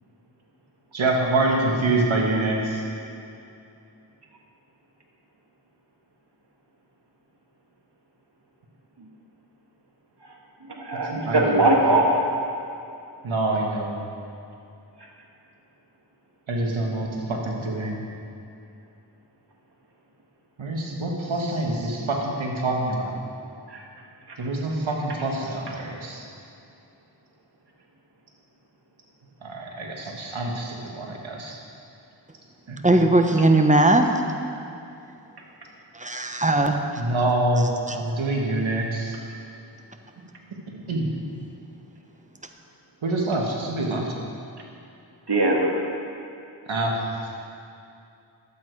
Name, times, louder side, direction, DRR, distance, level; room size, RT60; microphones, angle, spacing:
voice 1, 0.9-2.8 11.1-11.4 13.2-14.0 16.5-18.0 20.6-23.1 24.4-26.3 29.4-31.6 32.7-32.8 37.0-39.2 40.7-41.1 43.0-44.1 46.7-47.0, right 2 dB, 85° right, -1 dB, 1.7 m, -26 dB
voice 2, 10.7-12.1 23.7-23.8 45.3-45.7, right 2 dB, 60° right, 0 dB, 1.9 m, -20 dB
voice 3, 32.8-34.1 35.9-36.9 37.9-38.0, right 2 dB, 15° right, 5 dB, 1.0 m, -18 dB
11.5 x 8.5 x 4.7 m, 2.6 s
cardioid pair, 40°, 46 cm